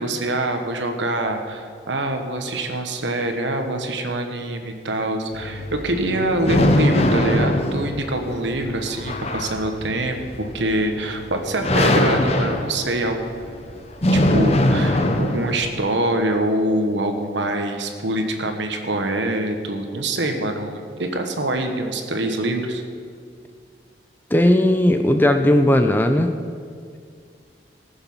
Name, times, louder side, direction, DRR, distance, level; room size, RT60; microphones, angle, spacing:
voice 1, 0.0-13.7 14.1-22.8, right 1 dB, 80° right, 5 dB, 1.3 m, -25 dB
sound 1, 5.3-15.8, left 1 dB, 35° left, 0.8 m, -22 dB
voice 2, 24.3-26.3, left 1 dB, 10° left, 6 dB, 0.5 m, -16 dB
18.5 x 7.1 x 5.5 m, 2.2 s
head